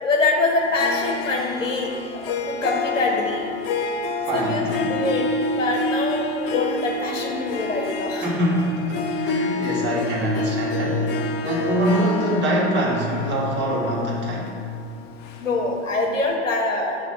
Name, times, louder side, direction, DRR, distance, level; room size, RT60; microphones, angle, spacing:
voice 1, 0.0-3.5 4.3-8.3 15.4-17.1, left 2 dB, 85° left, 0 dB, 1.1 m, -24 dB
Harp, 0.6-16.0, left 3 dB, 30° left, 0.4 m, -28 dB
voice 2, 4.2-4.9 8.2-11.1 11.4-14.6, equal, 30° right, -4 dB, 1.6 m, -24 dB
7.1 x 3.2 x 5.4 m, 2.2 s
hypercardioid pair, 95°, 37 cm